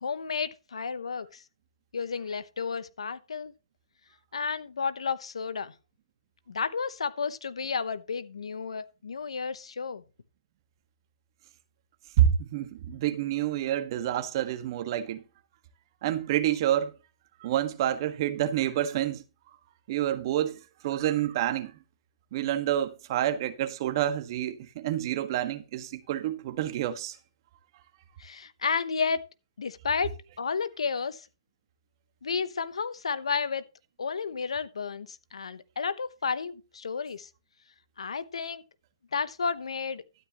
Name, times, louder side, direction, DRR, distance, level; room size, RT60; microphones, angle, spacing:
voice 1, 0.0-1.4 1.9-3.5 4.3-5.7 6.5-10.0 28.2-29.3 29.6-31.2 32.2-33.6 34.0-37.3 38.0-38.6 39.1-40.0, left 5 dB, 85° left, 0.9 m, -32 dB
voice 2, 12.2-15.2 16.0-16.9 17.4-19.2 19.9-21.7 22.3-27.2, right 11 dB, 50° right, 1.6 m, -28 dB
12.5 x 10.0 x 3.0 m
hypercardioid pair, 135°, 3 cm